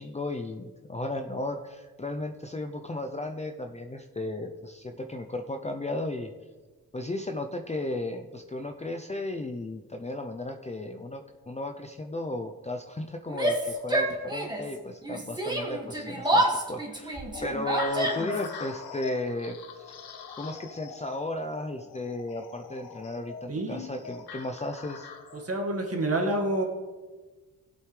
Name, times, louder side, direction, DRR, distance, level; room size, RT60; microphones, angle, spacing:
voice 1, 0.0-6.3 6.9-19.9 20.4-25.1, left 2 dB, 20° left, 4 dB, 0.6 m, -35 dB
Yell, 13.3-14.7 15.0-18.5, right 1 dB, 10° right, 2.0 m, -28 dB
sound 1, 17.3-25.5, left 5 dB, 85° left, 1.1 m, -42 dB
voice 2, 23.5-23.8 25.3-26.6, right 1 dB, 40° right, 2 dB, 2.0 m, -28 dB
17.0 x 8.0 x 3.3 m, 1.3 s
cardioid pair, 85°, 37 cm